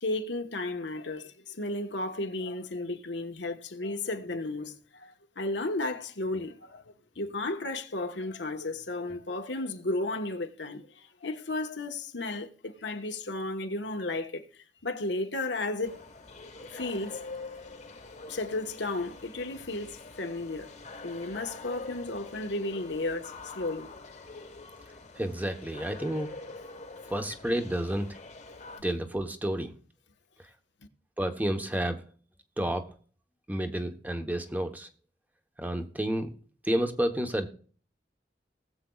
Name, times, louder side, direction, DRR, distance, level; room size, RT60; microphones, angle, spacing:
voice 1, 0.0-14.5 14.8-16.1 16.7-17.2 18.3-20.7 21.0-23.9, left 2 dB, 85° left, 1.3 m, -34 dB
sound 1, 15.8-28.8, left 3 dB, 45° left, 1.3 m, -45 dB
voice 2, 25.1-26.3 27.1-28.1 28.8-29.7 31.2-32.0 32.6-32.9 33.5-34.9 35.6-36.3 36.6-37.5, right 1 dB, 10° right, 0.9 m, -30 dB
20.0 x 7.6 x 2.3 m
head